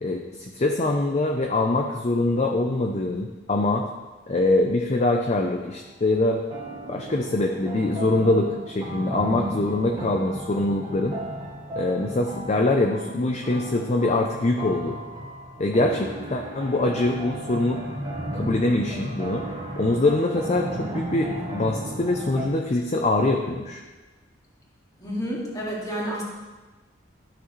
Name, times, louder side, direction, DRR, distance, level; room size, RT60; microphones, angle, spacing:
voice 1, 0.0-3.9 4.3-6.4 6.9-11.2 11.7-15.0 15.6-17.8 18.3-19.5 19.8-23.8, left 2 dB, 35° left, 2 dB, 0.5 m, -24 dB
sound 1, 5.5-5.8 6.5-22.5, right 1 dB, 25° right, 1.3 m, -35 dB
voice 2, 25.0-26.2, equal, 20° left, -5 dB, 2.2 m, -30 dB
13.0 x 6.1 x 3.2 m, 1.2 s
head